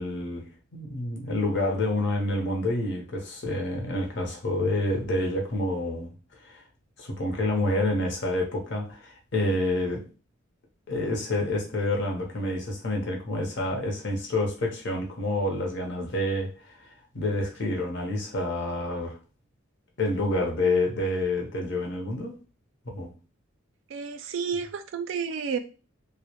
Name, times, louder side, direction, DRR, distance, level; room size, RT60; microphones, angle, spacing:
voice 1, 0.0-6.1 6.4-6.6 7.0-10.1 10.9-16.9 17.1-19.2 20.0-22.3 22.9-23.1, left 1 dB, 60° left, 0.7 m, -28 dB
voice 2, 23.9-25.6, right 6 dB, 65° right, 0.3 m, -31 dB
2.2 x 2.0 x 2.8 m
head